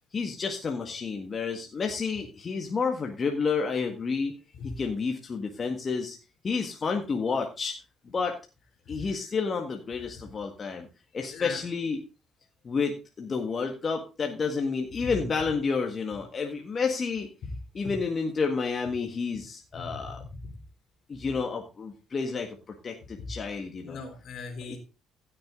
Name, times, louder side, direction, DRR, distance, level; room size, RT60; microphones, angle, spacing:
voice 1, 0.1-4.3 4.6-6.2 6.4-7.8 8.1-8.4 8.9-10.9 11.1-12.0 12.6-17.3 17.7-20.2 21.1-24.0 24.7-24.8, left 5 dB, 40° left, 3 dB, 1.8 m, -30 dB
voice 2, 19.7-20.4 23.2-23.3 23.8-24.8, left 4 dB, 65° left, 6 dB, 3.3 m, -39 dB
15.5 x 6.7 x 3.8 m, 0.30 s
supercardioid pair, 70°, 0 cm